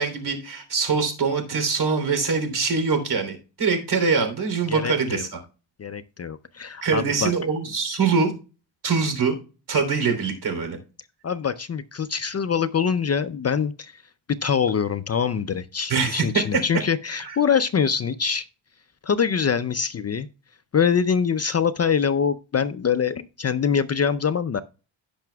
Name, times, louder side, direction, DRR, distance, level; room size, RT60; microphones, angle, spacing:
voice 1, 0.0-5.4 6.8-8.3 8.8-9.4 9.7-10.8 15.9-16.6 17.2-17.3, right 5 dB, 55° right, 3.3 m, -23 dB
voice 2, 4.7-5.3 5.8-7.3 11.2-13.9 14.4-18.4 19.0-20.3 20.7-24.6, left 7 dB, 35° left, 0.5 m, -24 dB
16.5 x 5.8 x 2.3 m
cardioid pair, 110°, 45 cm